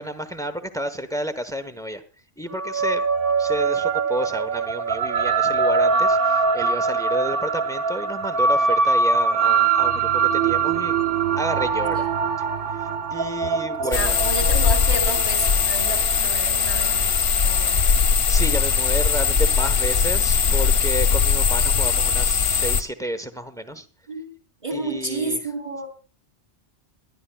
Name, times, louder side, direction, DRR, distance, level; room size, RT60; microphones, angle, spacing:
voice 1, 0.0-2.0 2.4-3.1 3.4-10.9 11.4-12.1 12.4-12.5 12.8-14.2 18.3-23.9 24.7-25.4, equal, 5° left, 9 dB, 0.9 m, -31 dB
sound 1, 2.5-17.2, right 5 dB, 55° right, 0.9 m, -23 dB
voice 2, 13.7-18.0 21.0-21.2 24.1-24.3 24.6-25.9, right 2 dB, 30° right, 3 dB, 3.8 m, -31 dB
sound 2, 13.9-22.8, left 6 dB, 55° left, 0.9 m, -20 dB
23.5 x 11.5 x 2.3 m, 0.36 s
omnidirectional pair, 1.2 m